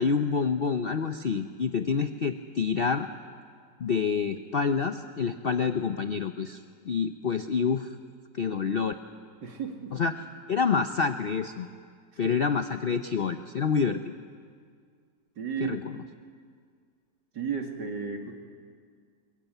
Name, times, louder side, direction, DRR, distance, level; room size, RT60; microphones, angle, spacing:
voice 1, 0.0-3.1 3.8-6.6 6.9-7.9 8.3-8.9 9.9-10.1 10.5-11.7 12.2-14.1 15.6-15.8, left 5 dB, 60° left, 8 dB, 0.6 m, -27 dB
voice 2, 9.4-10.0 12.2-12.4 15.4-15.9 17.3-18.3, right 6 dB, 75° right, 3 dB, 2.9 m, -33 dB
22.5 x 22.0 x 9.1 m, 2.1 s
omnidirectional pair, 1.9 m